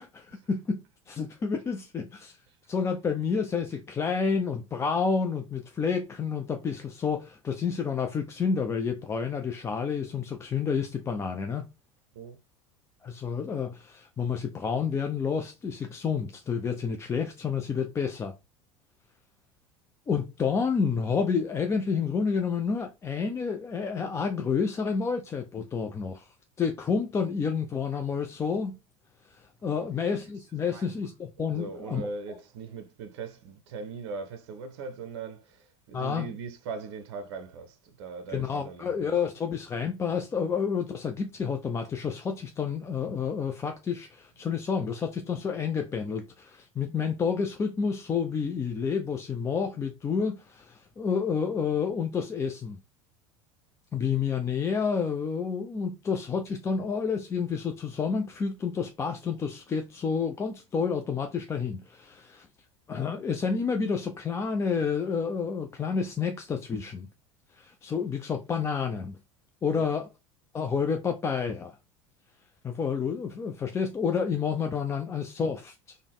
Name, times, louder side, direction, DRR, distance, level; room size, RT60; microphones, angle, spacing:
voice 1, 0.0-2.4 2.7-11.7 13.0-18.3 20.1-26.3 26.6-28.8 29.3-32.4 35.9-36.3 38.3-52.8 53.9-62.5 62.9-67.1 67.6-69.2 69.6-70.1 70.5-71.8 72.6-76.0, left 6 dB, 15° left, 0.3 m, -29 dB
voice 2, 29.8-30.9 31.4-39.1 69.7-69.9, right 4 dB, 60° right, 0.6 m, -40 dB
3.5 x 2.1 x 3.4 m
figure-of-eight pair, 75°, 16 cm